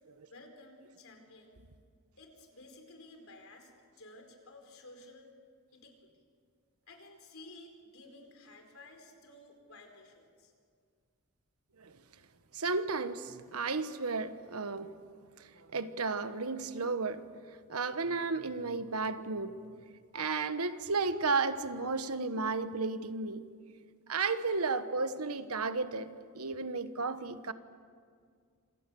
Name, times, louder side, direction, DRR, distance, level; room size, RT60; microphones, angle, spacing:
voice 1, 0.3-1.6 2.2-3.7 4.0-5.3 5.7-6.1 6.9-10.5, left 2 dB, 65° left, 4.6 m, -54 dB
voice 2, 12.5-14.9 15.4-17.3 17.7-19.6 20.1-23.5 24.1-27.5, right 4 dB, 85° right, 1.2 m, -33 dB
27.5 x 26.5 x 7.0 m
head